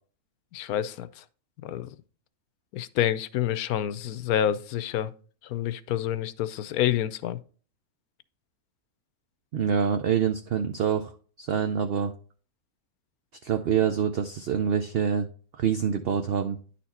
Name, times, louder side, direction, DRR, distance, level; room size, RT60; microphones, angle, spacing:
voice 1, 0.5-1.2 1.6-1.9 2.7-5.1 5.4-7.4, left 11 dB, 80° left, 1.1 m, -28 dB
voice 2, 9.5-11.1 11.4-12.1 13.4-15.3 15.5-16.6, right 7 dB, 60° right, 0.6 m, -26 dB
10.0 x 4.3 x 4.1 m
omnidirectional pair, 1.5 m